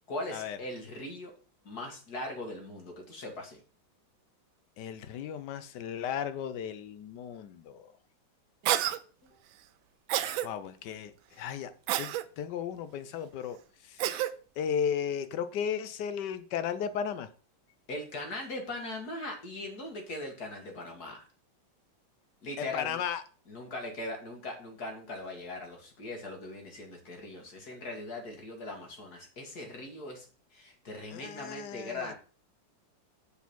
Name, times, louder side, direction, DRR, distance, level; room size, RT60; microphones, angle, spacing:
voice 1, 0.1-1.3 1.6-3.6 9.2-9.4 17.9-21.2 22.4-23.0 23.5-30.3 30.5-32.1, left 2 dB, 55° left, 2 dB, 2.4 m, -40 dB
voice 2, 4.8-7.9 10.2-11.7 12.0-13.6 13.8-14.3 14.6-17.3 22.6-23.2 31.1-32.1, left 8 dB, 70° left, 12 dB, 1.2 m, -35 dB
Cough, 8.7-9.0 10.1-10.5 11.9-12.2 14.0-14.3, right 13 dB, 90° right, 1.4 m, -28 dB
6.9 x 4.8 x 6.1 m, 0.39 s
omnidirectional pair, 2.1 m